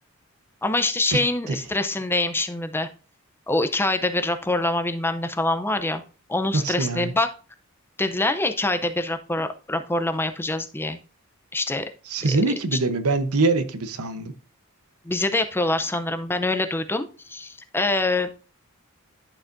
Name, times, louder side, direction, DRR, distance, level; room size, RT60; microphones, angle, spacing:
voice 1, 0.6-2.9 3.5-6.0 6.3-7.3 8.0-11.0 11.5-11.9 12.7-12.8 15.1-18.4, left 2 dB, 10° left, 0.5 m, -25 dB
voice 2, 6.5-7.1 12.1-14.3, right 3 dB, 85° right, 0.9 m, -24 dB
11.0 x 7.1 x 2.6 m
head